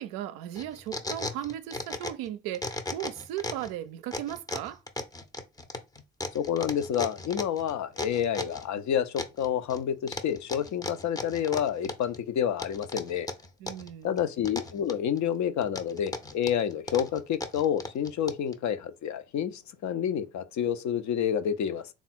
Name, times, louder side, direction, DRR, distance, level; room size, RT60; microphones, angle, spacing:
voice 1, 0.0-4.8 13.6-14.2, right 12 dB, 65° right, 0.5 m, -36 dB
sound 1, 0.6-2.3 2.5-3.7 4.1-8.7 9.2-9.8 10.1-12.2 12.6-13.9 14.2-15.2 15.6-18.5, left 2 dB, 10° left, 0.6 m, -36 dB
voice 2, 6.3-13.3 14.0-21.9, left 9 dB, 50° left, 0.6 m, -29 dB
3.5 x 2.4 x 4.2 m
hypercardioid pair, 45°, 37 cm